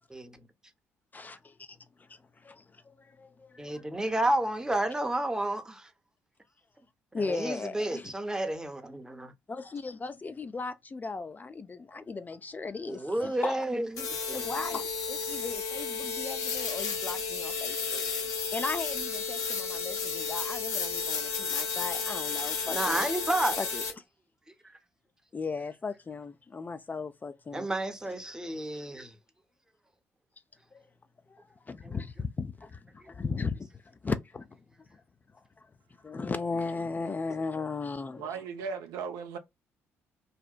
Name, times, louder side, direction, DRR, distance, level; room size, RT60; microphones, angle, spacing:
voice 1, 0.1-0.4 3.6-5.9 7.1-9.3 12.9-14.5 22.6-23.6 27.5-29.1 31.8-31.9 33.0-33.1, right 1 dB, 10° right, 0.7 m, -31 dB
voice 2, 1.1-1.8 2.1-3.6 7.1-8.1 9.5-13.7 14.3-18.1 18.5-23.1 23.6-23.8 25.3-27.7 30.7-30.8 31.3-31.4 31.7-33.7 34.0-34.5 36.0-38.4, left 4 dB, 25° left, 0.3 m, -37 dB
sound 1, 14.0-23.9, left 5 dB, 60° left, 0.8 m, -32 dB
voice 3, 38.2-39.4, right 6 dB, 70° right, 0.5 m, -36 dB
2.7 x 2.0 x 2.3 m
hypercardioid pair, 50°, 7 cm